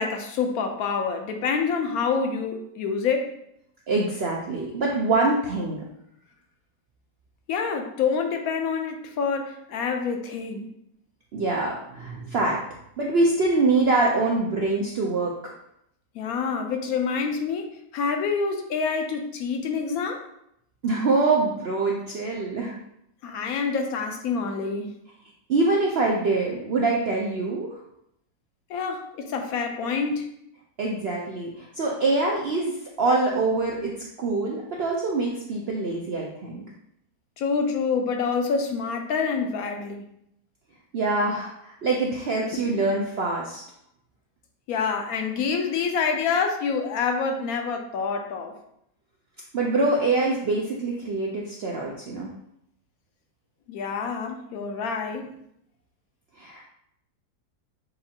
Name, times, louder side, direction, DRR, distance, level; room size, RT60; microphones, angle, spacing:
voice 1, 0.0-3.3 7.5-10.7 16.1-20.2 23.2-24.9 28.7-30.3 37.4-40.0 42.5-42.6 44.7-48.5 53.7-55.3, left 5 dB, 70° left, 4 dB, 1.0 m, -27 dB
voice 2, 3.9-5.9 11.3-12.6 13.0-15.4 20.8-22.7 25.5-27.8 30.8-36.6 40.9-43.6 49.5-52.3 56.4-56.7, right 3 dB, 75° right, -2 dB, 0.5 m, -24 dB
6.7 x 2.4 x 2.8 m, 0.75 s
omnidirectional pair, 1.7 m